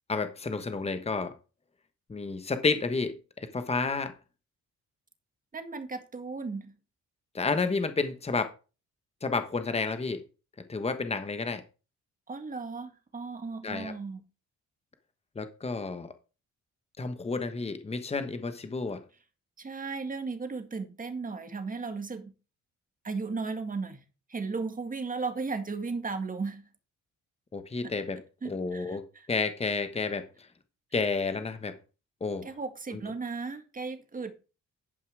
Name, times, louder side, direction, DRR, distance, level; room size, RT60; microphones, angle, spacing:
voice 1, 0.1-1.3 2.1-4.1 7.3-8.5 9.2-10.2 10.7-11.6 13.6-13.9 15.3-16.1 17.0-19.0 27.5-28.2 28.4-30.3 30.9-31.7 32.2-32.5, left 4 dB, 20° left, 1.2 m, -30 dB
voice 2, 5.5-6.8 12.3-14.2 19.6-22.3 23.0-24.0 24.3-26.7 28.4-29.3 32.4-34.3, right 4 dB, 25° right, 1.8 m, -35 dB
11.0 x 5.6 x 4.8 m
cardioid pair, 90°, 30 cm